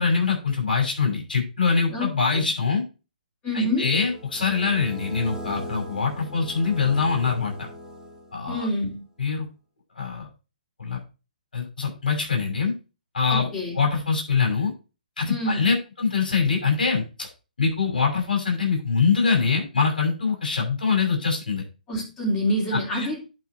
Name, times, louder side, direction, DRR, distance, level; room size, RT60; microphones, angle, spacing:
voice 1, 0.0-2.8 3.5-7.7 8.3-8.7 9.2-9.5 9.9-10.3 10.8-11.0 11.5-12.7 13.1-13.5 13.7-14.7 15.2-17.3 17.6-21.6 22.7-23.2, left 5 dB, 70° left, 1 dB, 6.4 m, -24 dB
voice 2, 3.4-3.9 8.5-9.0 13.3-13.8 15.3-15.6 21.9-23.2, equal, 20° left, -4 dB, 3.5 m, -26 dB
sound 1, 3.9-8.6, equal, 5° right, 2.4 m, -39 dB
11.0 x 5.2 x 4.4 m, 0.30 s
figure-of-eight pair, 135°, 5 cm